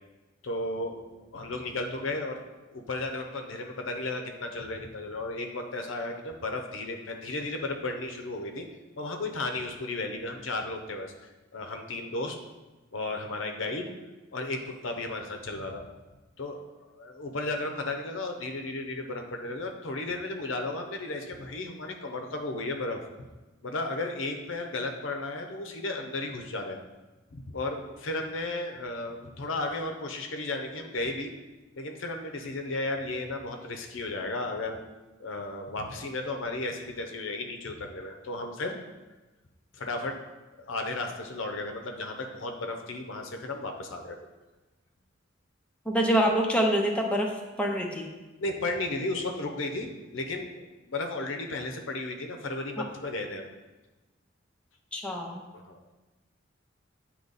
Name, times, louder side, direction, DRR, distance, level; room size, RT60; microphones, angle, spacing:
voice 1, 0.4-2.4 2.7-8.7 9.0-11.1 11.5-12.4 12.9-13.9 14.3-15.9 16.4-23.3 23.6-26.8 27.3-31.3 31.7-34.8 35.2-38.8 39.7-40.2 40.6-44.2 48.4-53.5 55.5-55.9, left 2 dB, 80° left, 4 dB, 0.7 m, -34 dB
voice 2, 45.9-47.3 47.6-48.1 54.9-55.4, equal, 5° left, 0 dB, 0.6 m, -25 dB
8.7 x 3.0 x 4.0 m, 1.2 s
head